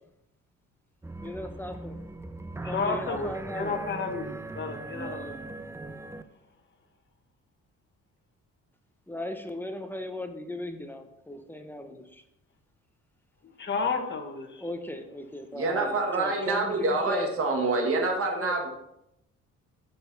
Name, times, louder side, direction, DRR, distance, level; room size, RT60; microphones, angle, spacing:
sound 1, 1.0-6.2, right 2 dB, 10° right, 0.5 m, -39 dB
voice 1, 1.2-2.0 2.6-3.8 5.0-5.4 9.1-12.2 14.6-17.3 18.4-18.6, left 1 dB, 5° left, 1.0 m, -37 dB
voice 2, 2.6-5.3 13.6-14.6, left 4 dB, 35° left, 1.4 m, -32 dB
voice 3, 15.5-18.7, right 2 dB, 50° right, 1.7 m, -26 dB
6.9 x 6.7 x 4.1 m
cardioid pair, 90°, 30 cm